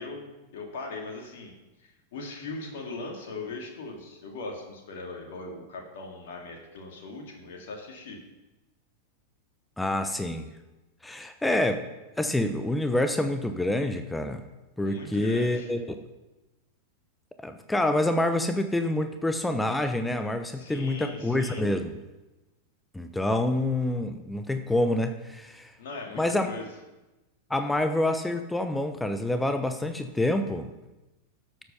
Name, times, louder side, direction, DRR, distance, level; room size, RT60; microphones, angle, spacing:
voice 1, 0.0-1.5 1.8-8.2 14.8-15.7 20.6-21.6 25.8-26.7, left 3 dB, 55° left, 1 dB, 2.3 m, -39 dB
voice 2, 9.8-10.5 11.0-11.8 12.2-14.4 14.8-15.8 17.4-21.9 22.9-25.7 26.1-26.5 27.5-30.7, left 1 dB, 5° left, 8 dB, 0.9 m, -27 dB
13.0 x 8.0 x 5.5 m, 1.1 s
figure-of-eight pair, 90°, 0 cm